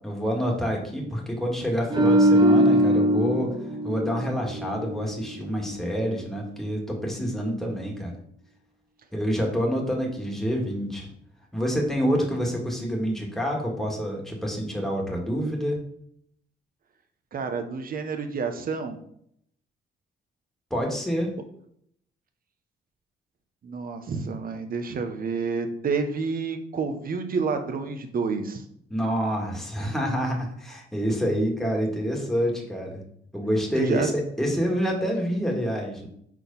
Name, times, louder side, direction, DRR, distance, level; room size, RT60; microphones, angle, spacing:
voice 1, 0.0-3.5 3.8-8.1 9.1-11.1 11.5-15.8 20.7-21.3 28.9-33.0 33.3-36.1, equal, ahead, -1 dB, 1.8 m, -27 dB
sound 1, 1.9-5.2 5.5-5.7, right 1 dB, 20° right, 0.9 m, -21 dB
voice 2, 17.3-19.0 23.6-28.6 33.8-34.1, right 5 dB, 45° right, 6 dB, 1.0 m, -29 dB
4.6 x 4.2 x 5.3 m, 0.68 s
cardioid pair, 90°, 20 cm